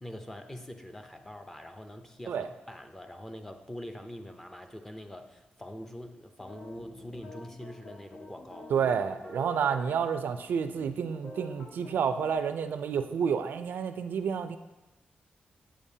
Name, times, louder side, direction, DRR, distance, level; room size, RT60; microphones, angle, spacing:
voice 1, 0.0-8.7, left 1 dB, 10° left, 6 dB, 0.5 m, -44 dB
sound 1, 6.4-10.0 10.3-10.4 10.7-12.3, left 1 dB, 85° left, 1.7 m, -47 dB
voice 2, 8.7-14.6, right 7 dB, 80° right, 10 dB, 0.4 m, -30 dB
8.6 x 7.1 x 2.7 m, 1.1 s
wide cardioid pair, 125°, 3 cm